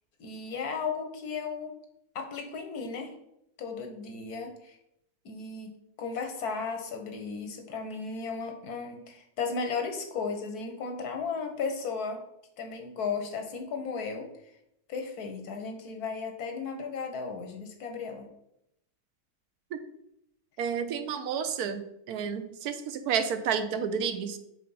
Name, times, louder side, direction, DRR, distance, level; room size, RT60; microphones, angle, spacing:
voice 1, 0.2-1.7 2.1-3.1 3.6-4.8 5.2-12.2 12.6-14.3 14.9-18.3, left 5 dB, 85° left, 4 dB, 1.5 m, -35 dB
voice 2, 20.6-21.8 22.1-24.4, right 7 dB, 80° right, 9 dB, 1.2 m, -30 dB
5.1 x 4.1 x 5.5 m, 0.79 s
omnidirectional pair, 1.6 m